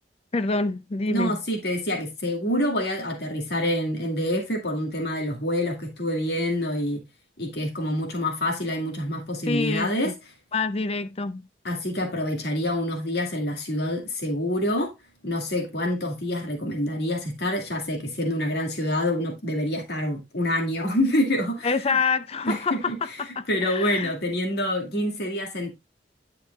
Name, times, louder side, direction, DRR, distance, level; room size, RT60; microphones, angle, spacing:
voice 1, 0.3-1.4 9.5-9.9 10.5-11.4 21.6-24.1, left 4 dB, 35° left, 0.5 m, -26 dB
voice 2, 1.1-7.0 7.4-10.1 11.6-14.9 15.2-22.0 22.5-23.2 23.5-25.7, left 1 dB, 65° left, 2.3 m, -27 dB
10.5 x 6.6 x 2.3 m
head